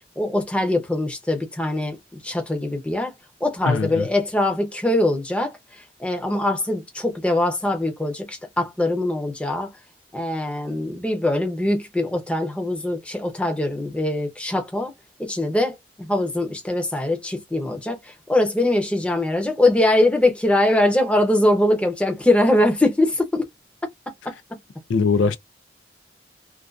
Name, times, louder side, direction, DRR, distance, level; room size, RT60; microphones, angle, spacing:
voice 1, 0.2-3.1 3.4-9.7 10.1-14.9 15.2-23.5 24.2-24.3, left 1 dB, 5° left, 0.5 m, -22 dB
voice 2, 3.7-4.1 24.9-25.4, left 4 dB, 90° left, 0.4 m, -20 dB
2.4 x 2.3 x 2.3 m
head